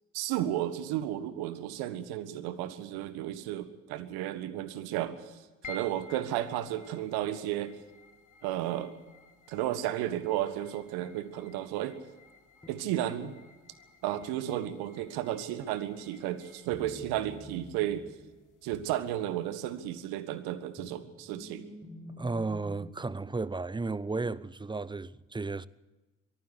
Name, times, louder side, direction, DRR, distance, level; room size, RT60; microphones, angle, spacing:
voice 1, 0.1-7.8 8.4-8.9 9.5-12.0 12.7-13.3 14.0-18.1 18.6-21.6, right 12 dB, 70° right, 1.6 m, -33 dB
sound 1, 5.6-20.1, left 2 dB, 50° left, 2.5 m, -54 dB
sound 2, 12.6-13.3 16.7-19.8 20.3-23.0, left 1 dB, 10° left, 4.2 m, -49 dB
voice 2, 22.2-25.7, right 3 dB, 10° right, 0.8 m, -34 dB
23.5 x 14.5 x 8.2 m
figure-of-eight pair, 45°, 38 cm